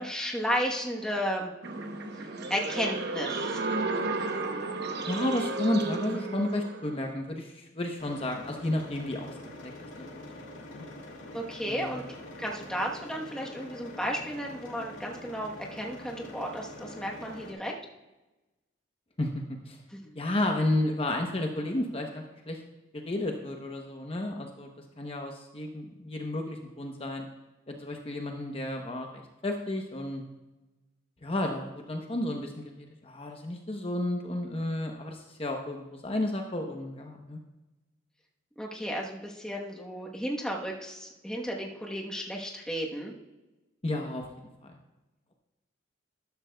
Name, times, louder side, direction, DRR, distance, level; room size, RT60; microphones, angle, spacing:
voice 1, 0.0-1.5 2.5-3.6 11.3-17.7 19.9-20.2 38.6-43.1, equal, 5° left, -1 dB, 1.1 m, -33 dB
sound 1, 1.6-7.0, right 3 dB, 60° right, 0.9 m, -33 dB
voice 2, 5.1-9.7 10.1-10.3 10.7-10.8 11.6-12.0 19.2-19.8 20.1-22.6 22.9-24.7 25.0-27.3 27.7-30.2 31.2-37.4 43.8-44.3 44.6-44.8, left 1 dB, 30° left, 2 dB, 0.9 m, -32 dB
sound 2, 8.0-17.5, left 1 dB, 80° left, 2.0 m, -45 dB
12.5 x 11.5 x 2.3 m, 1.1 s
head